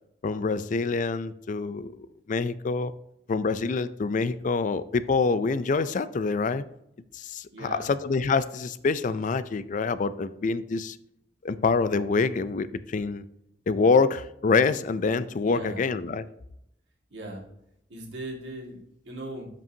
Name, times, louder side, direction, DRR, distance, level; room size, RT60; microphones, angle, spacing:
voice 1, 0.2-2.9 3.3-6.6 7.1-11.0 11.4-13.2 13.7-16.2, left 4 dB, 45° left, 14 dB, 0.4 m, -26 dB
voice 2, 7.5-7.9 15.4-15.8 17.1-17.4 17.9-19.5, right 1 dB, 75° right, -1 dB, 2.0 m, -38 dB
12.5 x 5.3 x 2.8 m, 0.79 s
head